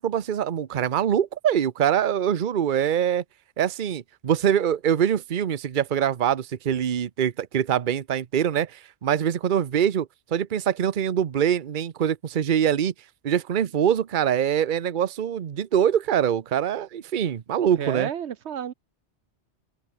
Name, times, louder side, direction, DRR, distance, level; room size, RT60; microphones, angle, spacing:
voice 1, 0.0-3.2 3.6-12.9 13.2-18.1, right 9 dB, 50° right, 0.9 m, -24 dB
voice 2, 17.8-18.7, right 9 dB, 85° right, 1.1 m, -31 dB
omnidirectional pair, 1.1 m